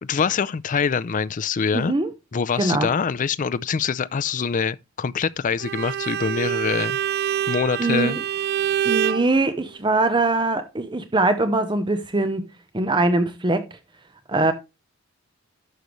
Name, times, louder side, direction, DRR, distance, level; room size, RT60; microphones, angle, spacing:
voice 1, 0.0-1.9 2.3-7.0 7.5-8.2, left 6 dB, 40° left, 0.4 m, -24 dB
voice 2, 1.7-2.1 2.6-2.9 7.8-8.2 8.8-12.5 12.7-13.8 14.3-14.5, right 2 dB, 20° right, 0.8 m, -22 dB
Bowed string instrument, 5.6-9.3, right 10 dB, 50° right, 0.4 m, -25 dB
11.5 x 6.7 x 3.1 m
head